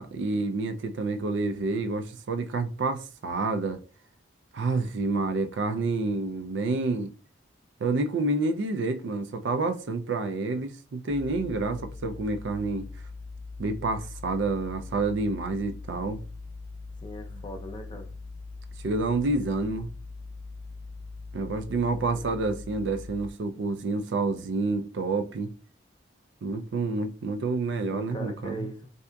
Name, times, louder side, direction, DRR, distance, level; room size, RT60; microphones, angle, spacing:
voice 1, 0.0-3.8 4.5-7.1 7.8-12.9 13.6-16.2 18.8-19.9 21.3-25.5 26.4-28.7, right 3 dB, 75° right, 0.4 m, -28 dB
sound 1, 11.1-23.3, left 3 dB, 85° left, 0.5 m, -41 dB
voice 2, 17.0-18.1 22.1-22.3 27.9-28.9, equal, 25° left, 0.5 m, -40 dB
3.5 x 2.7 x 2.2 m
head